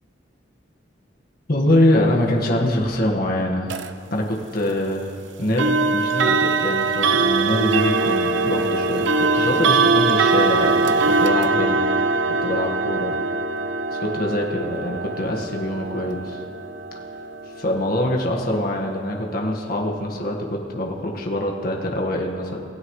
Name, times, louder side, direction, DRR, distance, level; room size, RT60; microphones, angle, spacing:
voice 1, 1.5-3.8 4.1-11.8 12.3-13.1 13.9-16.4 17.5-22.6, left 1 dB, 55° left, -1 dB, 1.7 m, -24 dB
sound 1, 3.7-3.9 5.6-18.4, right 3 dB, 85° right, 0.7 m, -22 dB
27.5 x 16.0 x 3.2 m, 2.6 s
head